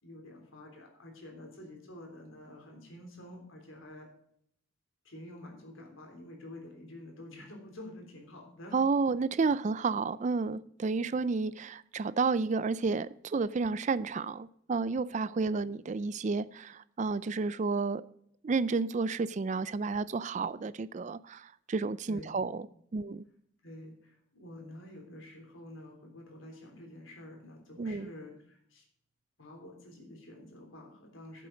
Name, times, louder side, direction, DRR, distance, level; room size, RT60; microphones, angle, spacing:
voice 1, 0.0-4.1 5.0-8.8 22.1-22.3 22.7-22.8 23.6-28.8 29.4-31.5, left 1 dB, 85° left, 3.4 m, -49 dB
voice 2, 8.7-18.0 18.4-22.7 22.9-23.2 27.8-28.1, right 4 dB, 35° right, 0.4 m, -31 dB
10.0 x 7.6 x 5.1 m
head